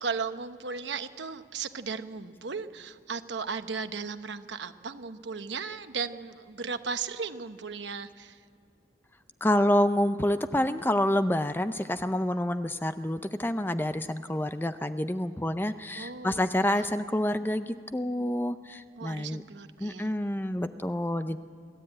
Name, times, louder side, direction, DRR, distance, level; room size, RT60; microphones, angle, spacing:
voice 1, 0.0-8.4 16.0-16.9 19.0-20.1, right 5 dB, 80° right, 10 dB, 0.9 m, -36 dB
voice 2, 9.4-19.4 19.8-21.4, left 1 dB, 10° left, 10 dB, 0.5 m, -28 dB
29.5 x 12.5 x 8.8 m, 2.3 s
head